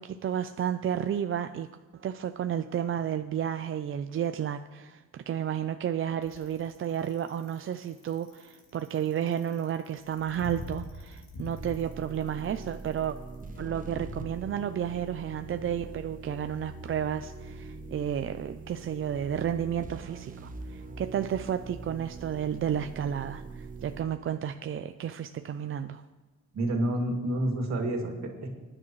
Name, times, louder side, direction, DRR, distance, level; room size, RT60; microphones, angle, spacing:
voice 1, 0.0-1.7 1.9-13.2 13.6-26.0, right 9 dB, 45° right, 9 dB, 0.5 m, -32 dB
Bicycle, 6.2-14.3, left 2 dB, 65° left, 3.5 m, -44 dB
sound 1, 11.6-24.0, right 3 dB, 25° right, 1.1 m, -43 dB
voice 2, 26.5-28.5, right 1 dB, 65° right, 2 dB, 2.4 m, -29 dB
21.0 x 9.9 x 3.2 m, 1.2 s
cardioid pair, 90°, 30 cm